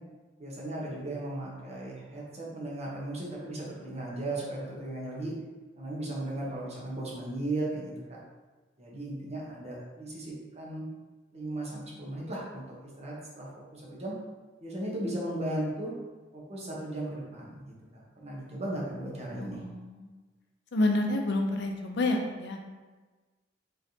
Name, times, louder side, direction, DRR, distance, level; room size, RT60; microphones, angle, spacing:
voice 1, 0.4-5.3 5.8-8.2 8.8-10.9 11.3-14.1 14.6-15.9 16.3-19.6, right 1 dB, 35° right, -4 dB, 1.0 m, -36 dB
voice 2, 19.3-20.1 20.7-22.6, left 2 dB, 65° left, 2 dB, 0.5 m, -29 dB
3.8 x 3.2 x 2.8 m, 1.3 s
head